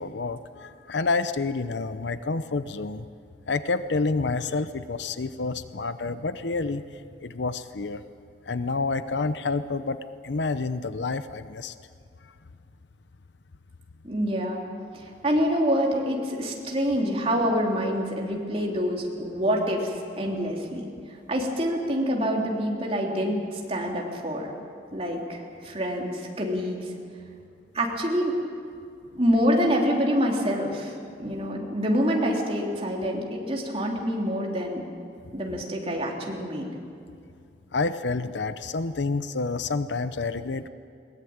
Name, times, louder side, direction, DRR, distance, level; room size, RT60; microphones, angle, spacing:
voice 1, 0.0-3.1 3.5-8.0 8.5-10.0 10.2-11.7 31.2-31.3 37.7-40.7, left 3 dB, 80° left, 12 dB, 0.7 m, -29 dB
voice 2, 14.0-14.6 14.9-20.9 21.3-24.5 24.9-26.9 27.7-28.3 29.1-34.8 35.3-36.7, equal, 35° right, -1 dB, 3.4 m, -26 dB
21.5 x 19.0 x 8.8 m, 2.4 s
head